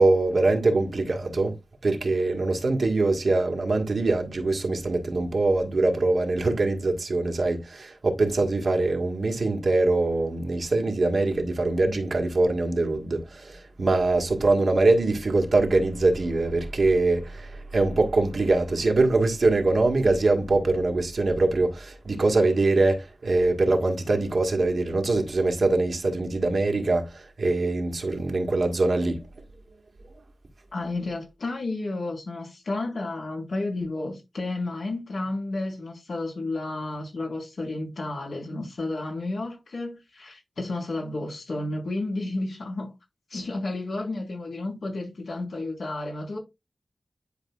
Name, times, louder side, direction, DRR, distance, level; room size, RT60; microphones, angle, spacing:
voice 1, 0.0-1.6 1.8-29.2, right 2 dB, 70° right, 1.7 m, -23 dB
voice 2, 30.7-42.9 43.3-46.4, left 2 dB, 90° left, 4.3 m, -32 dB
10.5 x 4.9 x 2.4 m
wide cardioid pair, 65°, 0 cm